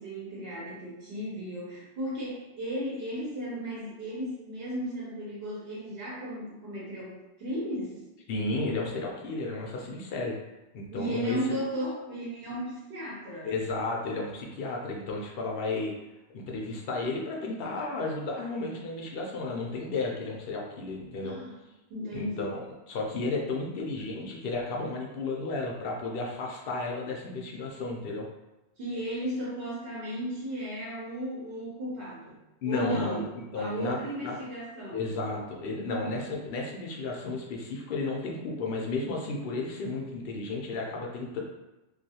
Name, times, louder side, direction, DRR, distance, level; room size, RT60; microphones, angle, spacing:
voice 1, 0.0-8.0 10.9-13.5 21.2-21.5 21.9-22.5 28.8-32.4 32.7-33.3 33.5-35.1, equal, 60° right, -7 dB, 0.9 m, -35 dB
voice 2, 8.3-10.4 10.7-11.6 13.4-15.9 16.3-21.4 22.1-28.3 32.6-34.0 34.2-34.4 34.9-41.4, left 3 dB, 65° left, -1 dB, 0.7 m, -33 dB
2.4 x 2.3 x 2.7 m, 1.0 s
omnidirectional pair, 1.2 m